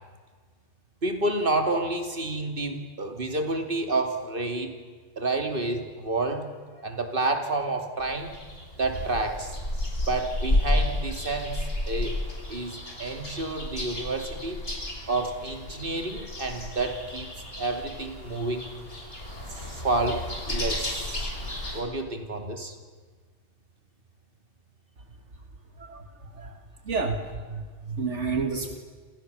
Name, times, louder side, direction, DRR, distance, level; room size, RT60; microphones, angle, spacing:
voice 1, 1.0-4.8 5.2-8.3 8.8-9.6 10.1-12.2 12.5-14.6 15.1-18.7 19.5-21.3 21.7-22.7, right 2 dB, 45° right, 5 dB, 3.1 m, -29 dB
sound 1, 8.0-21.8, left 1 dB, 55° left, 6.2 m, -32 dB
voice 2, 25.8-26.6 26.9-28.8, right 4 dB, 75° right, 5 dB, 2.4 m, -31 dB
29.5 x 27.5 x 7.1 m, 1.5 s
omnidirectional pair, 1.2 m